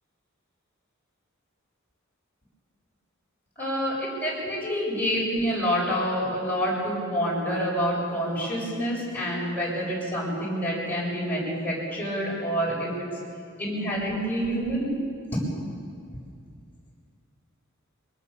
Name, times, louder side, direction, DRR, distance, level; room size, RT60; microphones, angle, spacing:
voice 1, 3.6-13.2 13.6-14.9, equal, 10° left, -5 dB, 7.8 m, -27 dB
23.5 x 22.0 x 7.2 m, 2.3 s
head